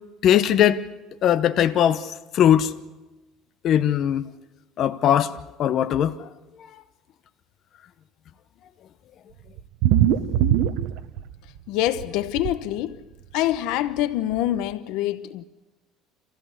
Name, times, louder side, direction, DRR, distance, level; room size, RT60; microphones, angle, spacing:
voice 1, 0.2-0.8 1.2-2.1 2.3-2.7 3.6-4.3 4.8-5.3 5.6-6.3, left 10 dB, 45° left, 0.9 m, -19 dB
sound 1, 9.6-11.6 11.9-12.5 13.5-13.6 14.0-14.1 14.3-14.4, right 11 dB, 70° right, 1.0 m, -21 dB
voice 2, 11.7-13.0 13.3-15.4, left 13 dB, 75° left, 0.9 m, -26 dB
26.5 x 15.5 x 8.2 m
cardioid pair, 140°, 0 cm